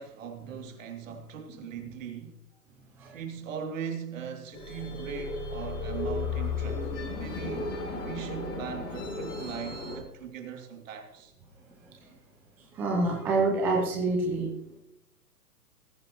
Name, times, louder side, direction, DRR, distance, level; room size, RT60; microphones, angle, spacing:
voice 1, 0.0-2.4 3.1-11.3, right 7 dB, 50° right, 2.6 m, -40 dB
sound 1, 4.5-10.0, left 3 dB, 50° left, 4.7 m, -34 dB
voice 2, 11.8-12.1 12.6-14.5, right 3 dB, 5° right, 0.5 m, -28 dB
19.5 x 9.7 x 3.0 m
figure-of-eight pair, 125°, 48 cm